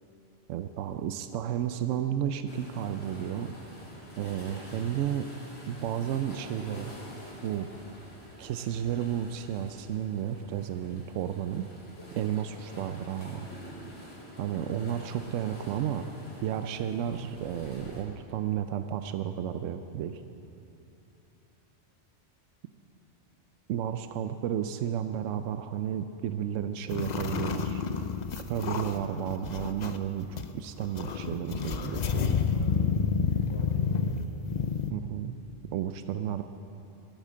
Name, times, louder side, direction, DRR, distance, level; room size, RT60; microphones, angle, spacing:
voice 1, 0.5-3.5 4.2-5.3 5.7-6.9 7.4-7.7 8.4-11.7 12.1-13.5 14.4-16.1 16.4-20.2 23.7-27.8 28.5-32.4 34.9-35.3 35.7-36.4, right 10 dB, 80° right, 9 dB, 0.9 m, -32 dB
sound 1, 2.5-18.0, equal, 70° left, 3.1 m, -47 dB
sound 2, 26.9-30.0 30.4-30.5 30.8-34.9, left 6 dB, 50° left, 0.6 m, -29 dB
voice 2, 32.5-34.6, equal, 10° left, -3 dB, 3.0 m, -48 dB
14.0 x 8.7 x 7.5 m, 2.8 s
omnidirectional pair, 1.3 m